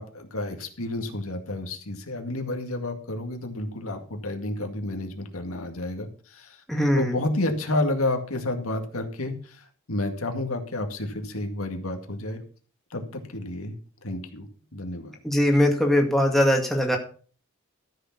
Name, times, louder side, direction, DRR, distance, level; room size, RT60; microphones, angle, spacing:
voice 1, 0.0-6.6 6.9-12.4 12.9-14.5 14.7-15.1, left 2 dB, 75° left, 4 dB, 2.1 m, -30 dB
voice 2, 6.7-7.1 15.2-17.0, left 1 dB, ahead, 1 dB, 2.1 m, -21 dB
13.0 x 6.7 x 5.9 m, 0.42 s
head